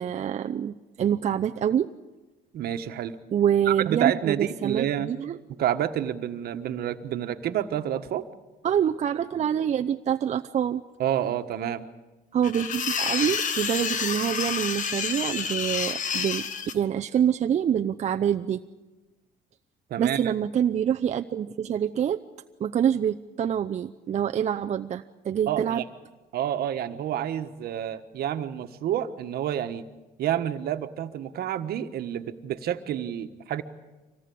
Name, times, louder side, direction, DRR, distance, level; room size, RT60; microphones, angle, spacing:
voice 1, 0.0-1.9 3.3-5.4 8.6-10.8 12.3-16.5 16.7-18.6 20.0-22.2 22.6-25.8, right 9 dB, 45° right, 6 dB, 0.7 m, -26 dB
voice 2, 2.5-3.1 3.7-5.1 5.6-8.2 11.0-11.8 19.9-20.3 25.5-25.8 26.3-29.8 30.2-33.6, right 10 dB, 65° right, 8 dB, 1.4 m, -29 dB
sound 1, 12.4-16.7, left 6 dB, 50° left, 1.5 m, -29 dB
25.0 x 18.0 x 8.6 m, 1.2 s
cardioid pair, 110°, 17 cm